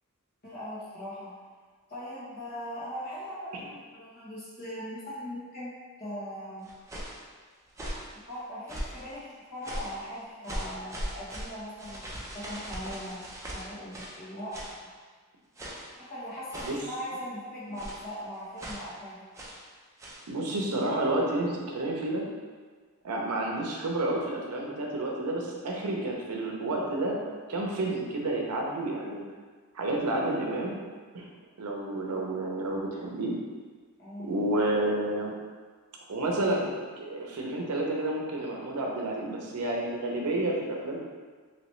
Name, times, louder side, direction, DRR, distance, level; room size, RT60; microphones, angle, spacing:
voice 1, 0.4-1.3 1.9-5.7 6.0-6.7 8.2-14.9 16.0-19.2 34.0-34.3, equal, 45° left, -10 dB, 1.3 m, -40 dB
sound 1, 6.6-7.2 7.7-8.1 8.7-9.1 9.6-10.0 10.4-14.2 14.5-14.8 15.6-15.9 16.5-16.9 17.8-18.1 18.6-18.9 19.3-19.6 20.0-20.3, equal, 15° right, 0.4 m, -39 dB
voice 2, 20.3-22.2 23.0-27.2 27.5-29.2 29.7-30.8 31.1-31.3 31.6-33.3 34.2-35.4 36.1-41.0, right 1 dB, 85° right, -1 dB, 0.6 m, -30 dB
3.0 x 3.0 x 3.0 m, 1.5 s
head